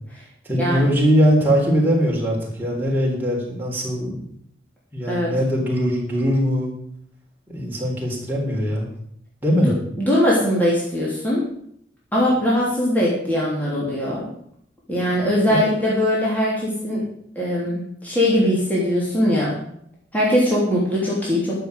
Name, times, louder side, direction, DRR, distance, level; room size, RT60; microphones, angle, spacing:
voice 1, 0.4-4.2 4.9-6.7 7.5-8.9 9.4-9.7 15.5-15.6, equal, 10° right, -3 dB, 4.1 m, -21 dB
voice 2, 9.6-11.4 12.1-14.3 14.9-17.0 17.3-19.5 20.1-21.6, equal, 10° left, -6 dB, 3.2 m, -21 dB
12.0 x 6.8 x 8.1 m, 0.71 s
head